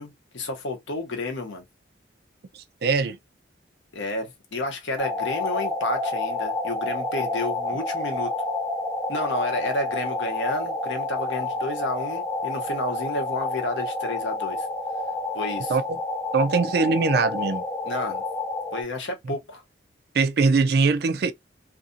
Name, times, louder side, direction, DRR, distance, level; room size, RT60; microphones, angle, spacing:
voice 1, 0.0-1.6 3.9-8.3 9.1-14.7 15.3-15.8 17.8-18.2 18.7-19.6, left 2 dB, 85° left, 0.8 m, -31 dB
voice 2, 2.8-3.2 15.7-16.0 16.3-17.6 20.1-21.3, right 4 dB, 55° right, 0.3 m, -21 dB
sound 1, 5.0-18.8, left 2 dB, 5° left, 0.6 m, -29 dB
2.6 x 2.4 x 2.5 m
head